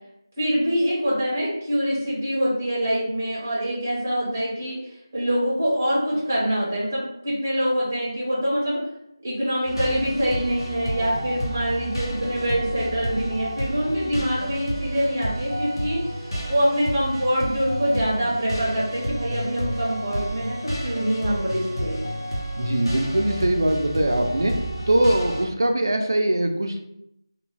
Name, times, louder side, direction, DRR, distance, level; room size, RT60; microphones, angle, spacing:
voice 1, 0.4-4.8 5.1-8.8 9.2-16.0 16.5-22.0, equal, 15° right, -7 dB, 0.7 m, -25 dB
sound 1, 9.6-25.4, equal, 65° left, 1.1 m, -30 dB
voice 2, 22.6-26.8, right 1 dB, 45° right, 4 dB, 0.4 m, -22 dB
2.6 x 2.2 x 3.2 m, 0.81 s
figure-of-eight pair, 180°, 2 cm